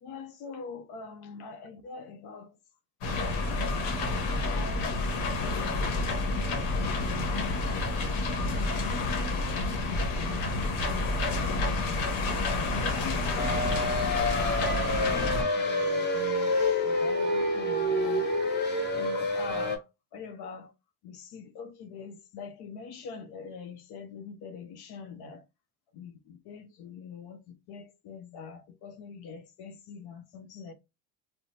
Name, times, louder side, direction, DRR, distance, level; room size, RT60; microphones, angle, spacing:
voice 1, 0.0-2.5 3.5-4.2 4.5-5.0 5.3-7.6 8.3-10.5 10.9-11.9 12.7-18.3 18.9-19.8 20.1-20.7 21.0-25.4 25.9-30.7, left 5 dB, 60° left, 0.6 m, -44 dB
sound 1, 3.0-15.4, left 2 dB, 80° left, 1.0 m, -29 dB
sound 2, 13.4-19.8, left 1 dB, 25° left, 1.1 m, -28 dB
2.8 x 2.1 x 2.6 m
supercardioid pair, 95°, 43 cm